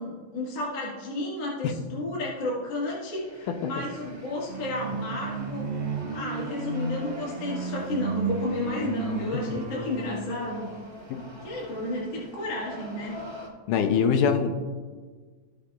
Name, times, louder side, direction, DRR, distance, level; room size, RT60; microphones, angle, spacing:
voice 1, 0.0-5.7 6.1-10.7 11.4-13.2, left 1 dB, 50° left, -6 dB, 2.7 m, -32 dB
sound 1, 2.8-13.5, equal, 30° right, 0.5 m, -45 dB
sound 2, 4.5-10.4, right 4 dB, 75° right, 3.3 m, -33 dB
voice 2, 13.7-14.6, left 6 dB, 80° left, 7 dB, 2.1 m, -24 dB
16.5 x 6.8 x 2.4 m, 1.5 s
omnidirectional pair, 3.8 m